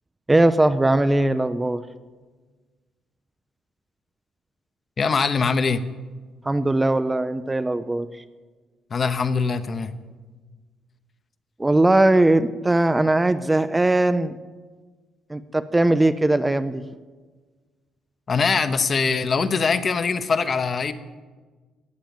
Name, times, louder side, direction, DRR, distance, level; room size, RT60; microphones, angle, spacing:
voice 1, 0.3-1.8 6.4-8.2 11.6-14.4 15.3-16.8, right 2 dB, 15° right, 11 dB, 0.5 m, -20 dB
voice 2, 5.0-5.8 8.9-9.9 18.3-20.9, left 5 dB, 35° left, 11 dB, 0.9 m, -22 dB
15.0 x 9.0 x 7.3 m, 1.4 s
cardioid pair, 110°, 0 cm